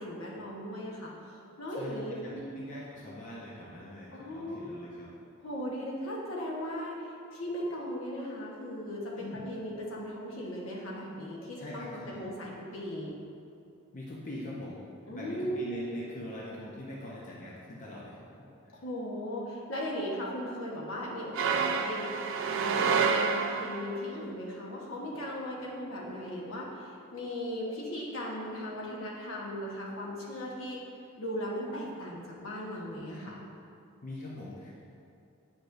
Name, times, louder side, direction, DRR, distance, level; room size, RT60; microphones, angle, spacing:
voice 1, 0.0-2.6 4.1-4.7 5.4-13.2 15.1-15.7 18.7-30.8 31.2-33.3, equal, 70° left, -4 dB, 1.2 m, -37 dB
voice 2, 1.8-5.1 9.2-9.4 11.6-12.2 13.9-14.8 15.1-18.7 33.1-33.4 34.0-34.9, left 1 dB, 35° left, -5 dB, 0.7 m, -43 dB
sound 1, 21.3-24.0, right 5 dB, 60° right, 0.4 m, -28 dB
8.8 x 4.9 x 2.6 m, 2.6 s
head